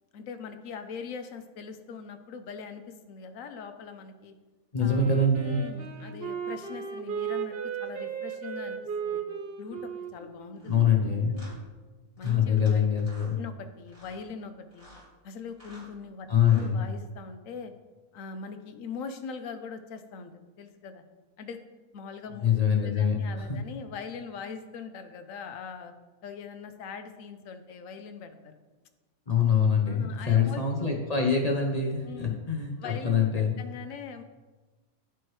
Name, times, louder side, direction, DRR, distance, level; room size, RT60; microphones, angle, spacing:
voice 1, 0.1-4.3 4.8-5.2 5.4-8.8 9.0-9.2 9.6-11.0 11.3-11.7 12.2-12.9 13.3-14.9 15.2-17.7 18.1-20.3 20.6-21.0 21.4-21.6 21.9-22.5 22.8-25.9 26.2-28.6 29.9-31.0 32.0-32.4 32.8-33.2 33.6-34.2, left 5 dB, 70° left, 8 dB, 1.0 m, -41 dB
voice 2, 4.7-5.6 10.7-11.4 12.2-13.3 16.3-16.8 22.4-23.6 29.3-33.5, left 6 dB, 40° left, 0 dB, 0.6 m, -24 dB
Wind instrument woodwind instrument, 4.9-11.6, right 7 dB, 50° right, 0.8 m, -36 dB
sound 1, 10.6-10.8 11.3-11.6 12.2-12.7 13.0-13.3 13.9-14.2 14.7-15.1 15.5-15.9 16.4-16.7, equal, 25° right, 2.7 m, -52 dB
11.0 x 4.6 x 3.1 m, 1.2 s
omnidirectional pair, 1.5 m